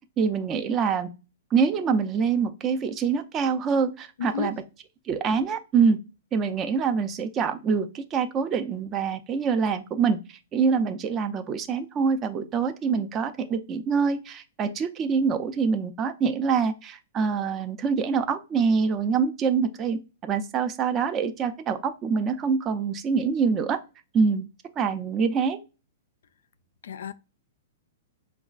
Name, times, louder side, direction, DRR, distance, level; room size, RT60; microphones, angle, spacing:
voice 1, 0.2-1.1 1.5-4.5 5.1-6.0 6.3-23.8 24.1-24.5 24.8-25.6, right 5 dB, 20° right, 0.4 m, -25 dB
voice 2, 4.2-4.6 26.8-27.1, left 7 dB, 80° left, 0.3 m, -31 dB
4.7 x 2.3 x 2.4 m
hypercardioid pair, 160°, 0 cm